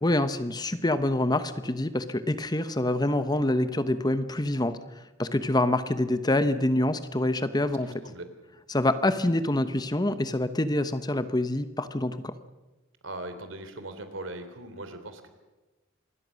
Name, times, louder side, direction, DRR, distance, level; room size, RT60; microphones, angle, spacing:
voice 1, 0.0-4.8 5.2-7.9 8.7-12.3, left 1 dB, 20° left, 12 dB, 1.0 m, -26 dB
voice 2, 7.8-8.3 13.0-15.3, right 1 dB, 75° right, 9 dB, 3.2 m, -39 dB
26.5 x 21.0 x 6.4 m, 1.1 s
head